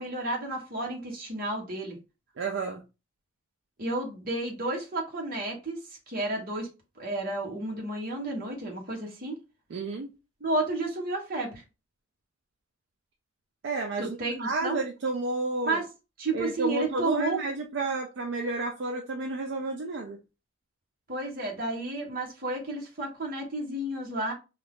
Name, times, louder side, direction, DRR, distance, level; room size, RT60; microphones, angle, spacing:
voice 1, 0.0-2.0 3.8-6.7 7.0-9.4 10.4-11.6 14.0-14.8 15.6-15.9 16.2-17.4 21.1-24.3, right 2 dB, 50° right, 1.1 m, -31 dB
voice 2, 2.4-2.8 9.7-10.1 13.6-15.8 16.3-20.2, right 3 dB, 70° right, 0.4 m, -31 dB
2.6 x 2.4 x 3.4 m
head